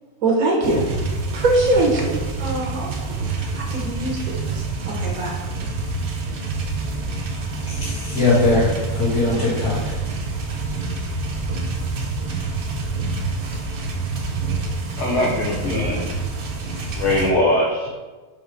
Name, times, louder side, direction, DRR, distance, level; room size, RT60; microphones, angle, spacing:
voice 1, 0.2-0.8 1.3-2.1 2.4-5.4, right 2 dB, 70° right, -1 dB, 1.6 m, -23 dB
sound 1, 0.6-17.3, right 3 dB, 50° right, 0.7 m, -27 dB
voice 2, 7.6-10.0 15.6-16.2 16.5-17.0, left 3 dB, 80° left, -13 dB, 2.5 m, -22 dB
voice 3, 15.0-16.1 16.9-17.9, left 1 dB, 55° left, -3 dB, 1.1 m, -21 dB
5.5 x 3.5 x 5.0 m, 1.3 s
omnidirectional pair, 1.6 m